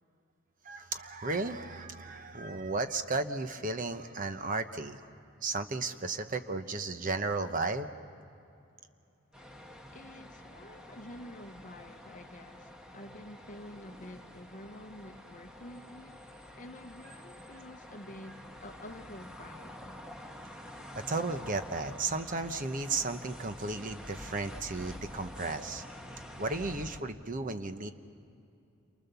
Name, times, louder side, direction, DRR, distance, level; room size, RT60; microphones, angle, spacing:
voice 1, 0.6-5.0 5.4-7.9 21.1-25.8 26.4-27.9, right 3 dB, 40° right, 0.9 m, -34 dB
sound 1, 9.3-27.0, left 1 dB, 5° right, 1.2 m, -48 dB
voice 2, 9.9-16.3 16.6-19.8, left 1 dB, 40° left, 0.8 m, -49 dB
29.0 x 24.0 x 6.9 m
head